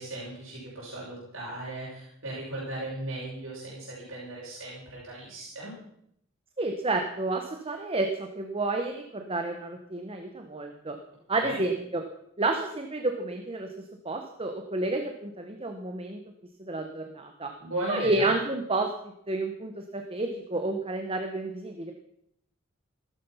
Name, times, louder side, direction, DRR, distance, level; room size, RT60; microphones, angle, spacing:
voice 1, 0.0-5.7 11.4-11.6 17.6-18.3, right 1 dB, 70° right, -6 dB, 6.0 m, -37 dB
voice 2, 6.6-11.0 11.3-12.0 12.4-16.2 16.6-17.5 17.9-21.9, right 2 dB, 25° right, 4 dB, 1.2 m, -30 dB
15.5 x 13.0 x 5.7 m, 0.73 s
head